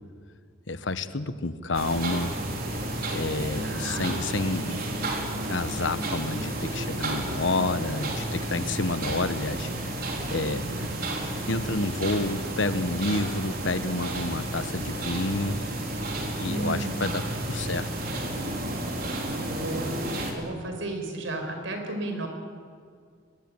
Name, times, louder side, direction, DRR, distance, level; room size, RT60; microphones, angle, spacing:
voice 1, 0.7-2.4 3.1-4.8 5.5-9.7 10.3-10.7 11.5-15.6 16.4-17.9, left 2 dB, 70° left, 12 dB, 1.2 m, -29 dB
sound 1, 1.7-20.3, right 1 dB, 50° right, 4.0 m, -32 dB
voice 2, 3.6-4.0 10.5-10.9 16.4-17.0 19.4-19.9 20.3-22.3, right 2 dB, 80° right, 4 dB, 4.9 m, -34 dB
22.5 x 21.5 x 9.1 m, 2.1 s
head